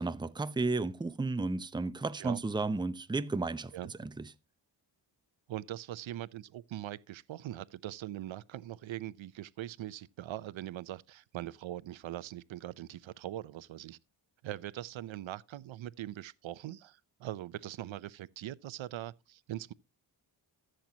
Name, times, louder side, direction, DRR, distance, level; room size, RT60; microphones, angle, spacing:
voice 1, 0.0-3.7 4.0-4.3, right 3 dB, 10° right, 0.6 m, -33 dB
voice 2, 5.5-14.0 14.4-19.7, right 13 dB, 75° right, 0.7 m, -41 dB
14.5 x 7.7 x 2.8 m
cardioid pair, 85°, 47 cm